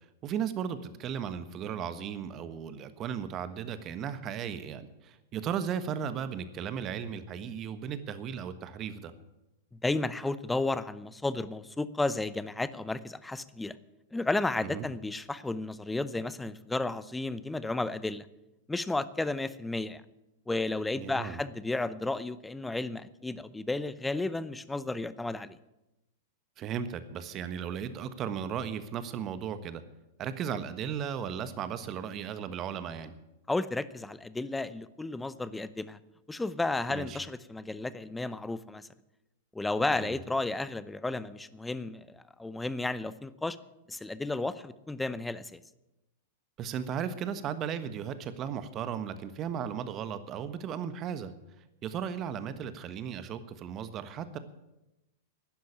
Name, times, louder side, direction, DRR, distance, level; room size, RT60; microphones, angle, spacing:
voice 1, 0.2-9.1 14.6-14.9 20.9-21.4 26.6-29.8 30.2-33.2 36.9-37.2 39.9-40.2 46.6-51.3 51.8-54.4, right 8 dB, 35° right, 12 dB, 1.3 m, -36 dB
voice 2, 9.8-13.8 14.1-18.3 18.7-20.0 20.5-25.6 33.5-36.0 36.3-38.9 39.5-43.6 43.9-45.6, left 2 dB, 10° left, 16 dB, 0.7 m, -33 dB
12.0 x 10.0 x 8.7 m, 0.96 s
hypercardioid pair, 105°, 0 cm